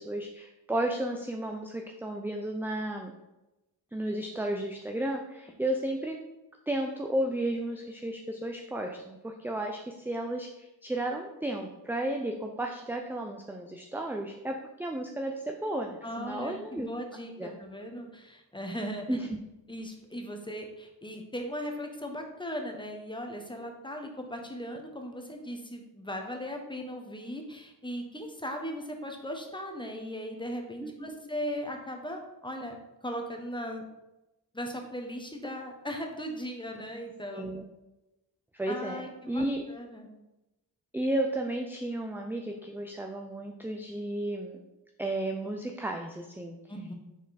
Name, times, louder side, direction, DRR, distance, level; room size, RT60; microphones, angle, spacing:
voice 1, 0.0-3.1 3.9-6.2 6.7-16.9 17.4-17.5 19.1-19.2 30.8-31.2 37.3-37.6 38.5-39.0 39.3-39.6 40.9-44.6 45.0-46.6, right 1 dB, 5° right, 2 dB, 0.5 m, -33 dB
voice 2, 16.0-19.3 19.7-32.8 33.0-33.8 34.5-37.5 38.7-40.1 46.7-46.9, equal, 10° left, 3 dB, 1.1 m, -38 dB
5.9 x 4.3 x 4.1 m, 0.98 s
cardioid pair, 70°, 45 cm